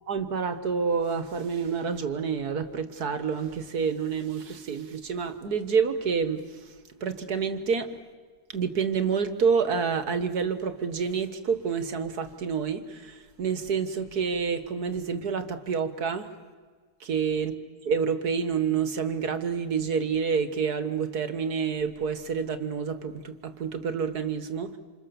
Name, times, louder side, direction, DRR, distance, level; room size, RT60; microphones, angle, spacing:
voice 1, 0.1-6.7 7.0-7.9 8.5-16.3 17.1-17.5 17.8-24.8, right 6 dB, 75° right, 2.0 m, -28 dB
28.0 x 27.5 x 7.1 m
omnidirectional pair, 1.7 m